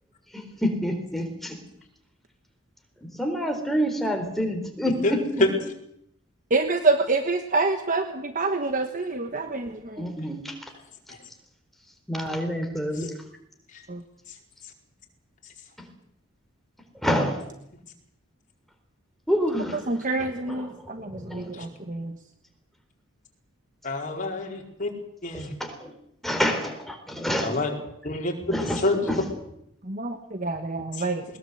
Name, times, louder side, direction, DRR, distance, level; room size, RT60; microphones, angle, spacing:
voice 1, 0.3-1.6 3.0-5.5 10.0-10.6 12.1-13.1 15.8-15.9 17.0-17.4 19.3-20.0 20.4-21.9 25.3-26.0 26.2-27.6 28.5-29.2, equal, ahead, 4 dB, 4.0 m, -28 dB
voice 2, 6.5-10.1 13.9-14.0 19.9-22.2 29.8-31.2, right 3 dB, 40° right, 7 dB, 1.3 m, -27 dB
voice 3, 23.8-24.9 25.2-25.5 27.4-27.7 28.0-28.3 28.8-29.0 31.0-31.1, left 2 dB, 35° left, 0 dB, 4.7 m, -27 dB
21.5 x 20.5 x 8.1 m, 0.76 s
head